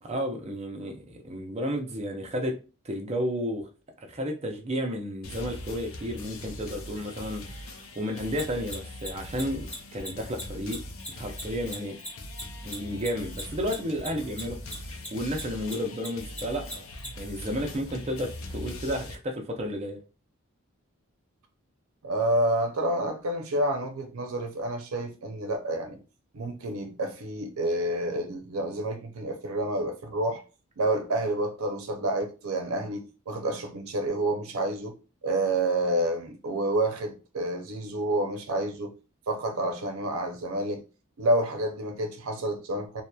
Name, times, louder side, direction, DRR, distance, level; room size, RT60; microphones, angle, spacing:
voice 1, 0.0-2.6 2.8-3.7 4.0-10.8 11.1-12.0 12.6-16.8 17.2-20.0, equal, 30° right, 0.5 m, -32 dB
sound 1, 5.2-19.2, left 1 dB, 75° left, 0.4 m, -41 dB
Mechanisms, 8.3-15.1 15.3-17.1, equal, 5° left, 1.1 m, -38 dB
voice 2, 22.0-26.0 26.3-30.4 30.8-35.0 35.2-38.9 39.3-40.8 41.2-43.0, right 1 dB, 85° right, 0.5 m, -29 dB
2.8 x 2.1 x 2.2 m
head